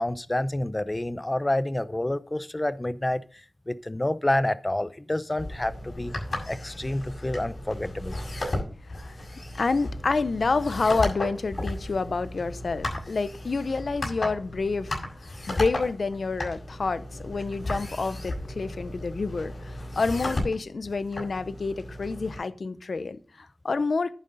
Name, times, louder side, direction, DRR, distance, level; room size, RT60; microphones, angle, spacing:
voice 1, 0.0-3.2 3.7-6.1 6.5-8.2, left 1 dB, 25° left, 0.7 m, -28 dB
sound 1, 5.4-22.4, left 1 dB, 60° left, 6.8 m, -35 dB
voice 2, 9.6-15.0 15.5-24.1, left 4 dB, 85° left, 0.7 m, -28 dB
10.5 x 9.2 x 4.0 m
wide cardioid pair, 70°, 0 cm